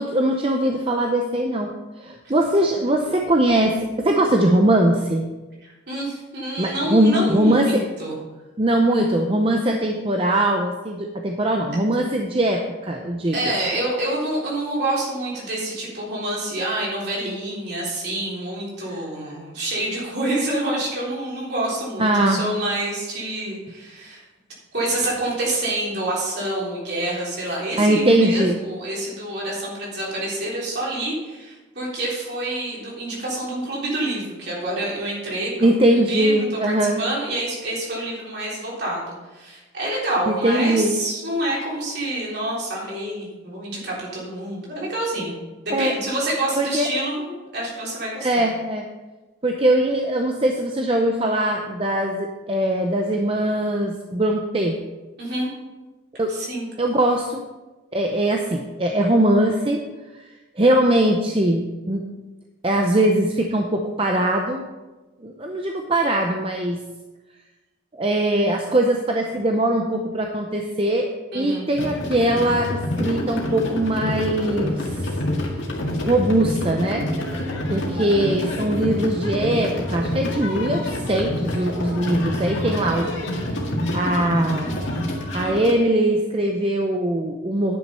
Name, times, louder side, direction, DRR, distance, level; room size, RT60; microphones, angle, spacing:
voice 1, 0.0-1.7 2.0-5.3 6.6-7.8 8.6-13.5 22.0-22.4 27.8-28.6 35.6-37.0 40.3-41.0 45.7-45.9 46.6-46.9 48.2-48.8 49.4-54.8 56.2-56.3 56.8-57.4 57.9-59.8 60.6-62.1 62.6-64.6 65.2-66.8 67.9-74.9 76.0-77.1 77.7-83.1 83.9-84.8 85.3-87.8, right 1 dB, 30° right, 2 dB, 0.6 m, -21 dB
voice 2, 5.6-8.1 13.3-24.2 24.7-35.7 36.1-45.3 45.6-48.5 55.2-55.5 56.3-56.7 71.3-71.7 77.7-78.0, right 1 dB, 55° right, -5 dB, 3.7 m, -27 dB
sound 1, 71.7-85.7, left 1 dB, 70° left, 2.0 m, -27 dB
10.5 x 6.4 x 5.6 m, 1.2 s
head